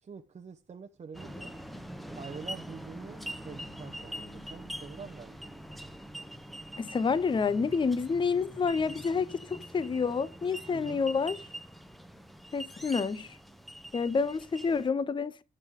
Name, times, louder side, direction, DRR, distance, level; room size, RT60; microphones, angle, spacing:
voice 1, 0.0-1.5 2.2-6.0 10.7-11.0, right 6 dB, 35° right, 0.8 m, -46 dB
sound 1, 1.1-14.9, equal, ahead, 0.9 m, -44 dB
voice 2, 6.8-11.4 12.5-13.3 13.9-15.4, left 5 dB, 25° left, 0.6 m, -29 dB
13.5 x 6.4 x 3.6 m
cardioid pair, 90°, 20 cm